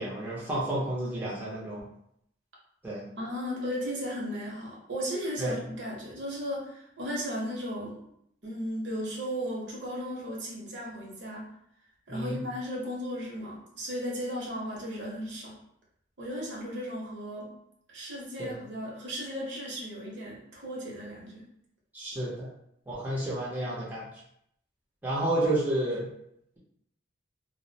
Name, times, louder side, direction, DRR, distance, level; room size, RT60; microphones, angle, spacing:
voice 1, 0.0-1.8 2.8-3.0 5.4-5.5 12.1-12.4 18.4-18.5 21.9-22.5 22.9-24.0 25.0-26.0, right 1 dB, 10° right, -7 dB, 0.5 m, -30 dB
voice 2, 3.2-8.0 8.4-11.5 12.1-15.6 16.2-17.5 17.9-21.4, equal, 65° right, -4 dB, 0.7 m, -35 dB
2.3 x 2.0 x 2.7 m, 0.74 s
head